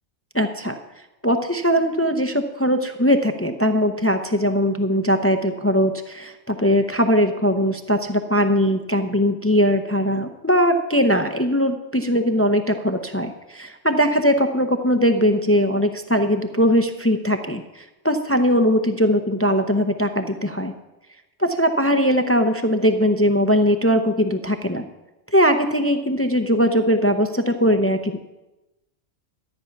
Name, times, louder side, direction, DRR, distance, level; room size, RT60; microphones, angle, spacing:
voice 1, 0.3-0.7 1.2-20.7 21.4-24.9 25.3-28.2, equal, 15° left, 7 dB, 0.5 m, -20 dB
13.0 x 9.3 x 5.8 m, 1.0 s
omnidirectional pair, 1.2 m